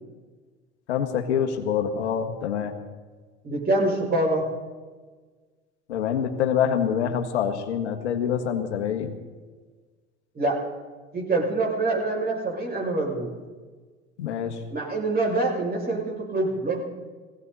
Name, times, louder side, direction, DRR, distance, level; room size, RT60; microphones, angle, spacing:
voice 1, 0.9-2.7 5.9-9.1 14.2-14.5, left 8 dB, 85° left, 5 dB, 1.7 m, -26 dB
voice 2, 3.4-4.5 10.3-10.6 11.1-13.3 14.7-16.8, right 2 dB, 30° right, -1 dB, 6.6 m, -25 dB
19.0 x 17.0 x 4.2 m, 1.4 s
hypercardioid pair, 85°, 33 cm